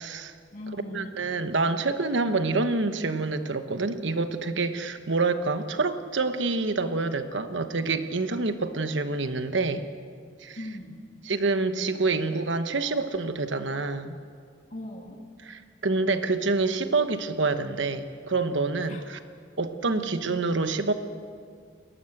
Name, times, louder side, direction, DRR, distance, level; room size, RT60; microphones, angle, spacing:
voice 1, 0.0-0.3 0.9-9.9 10.4-10.6 11.2-14.2 15.4-19.2 19.6-20.9, right 3 dB, 75° right, 9 dB, 1.1 m, -27 dB
voice 2, 0.5-1.3 10.6-11.0 14.7-15.2 18.9-19.0 19.8-20.2, left 1 dB, 40° left, 1 dB, 2.4 m, -39 dB
22.0 x 18.5 x 7.9 m, 2.2 s
head